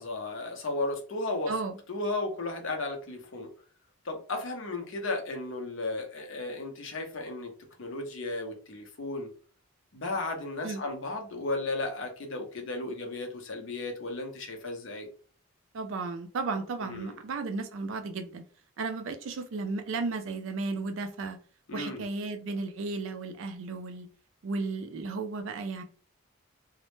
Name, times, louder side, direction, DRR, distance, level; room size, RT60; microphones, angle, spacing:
voice 1, 0.0-1.5 1.9-3.5 4.0-7.5 7.8-9.3 9.9-15.1 16.8-17.2 21.7-22.1, left 2 dB, 60° left, 3 dB, 0.6 m, -34 dB
voice 2, 15.7-18.4 18.8-21.4 21.7-24.1 24.4-25.8, right 3 dB, 60° right, 7 dB, 0.4 m, -34 dB
2.0 x 2.0 x 3.0 m, 0.40 s
head